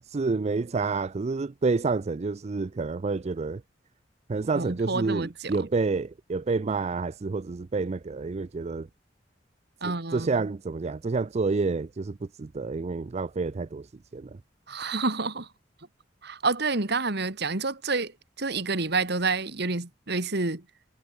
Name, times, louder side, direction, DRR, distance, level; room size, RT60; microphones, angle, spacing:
voice 1, 0.1-3.6 4.3-8.9 9.8-14.4, right 4 dB, 35° right, 0.4 m, -29 dB
voice 2, 4.5-5.3 5.6-5.7 9.8-10.4 14.7-15.5 16.2-18.1 18.4-20.6, right 3 dB, 60° right, 2.2 m, -28 dB
head